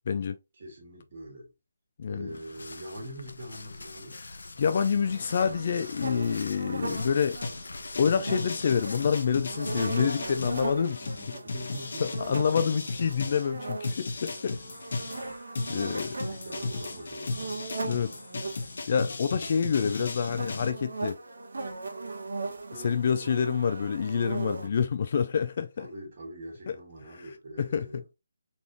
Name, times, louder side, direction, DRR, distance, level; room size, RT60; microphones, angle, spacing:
voice 1, 0.1-0.4 2.0-2.3 4.1-7.4 8.0-11.1 12.0-14.6 15.1-15.3 15.7-16.1 17.8-18.1 18.9-21.2 22.8-25.9 26.7-26.8 27.1-27.3 27.6-28.0, left 6 dB, 35° left, 0.3 m, -27 dB
voice 2, 0.6-1.5 2.1-4.2 11.0-12.8 15.7-17.6 19.5-19.7 22.7-23.5 25.8-28.1, right 1 dB, 35° right, 1.9 m, -44 dB
sound 1, 2.3-10.8, left 3 dB, 80° left, 0.6 m, -44 dB
sound 2, 5.0-18.7 19.6-24.7, right 3 dB, 70° right, 1.5 m, -39 dB
sound 3, 7.0-13.5 13.8-20.7, left 3 dB, 50° left, 0.9 m, -36 dB
4.1 x 3.4 x 2.9 m
hypercardioid pair, 175°, 0 cm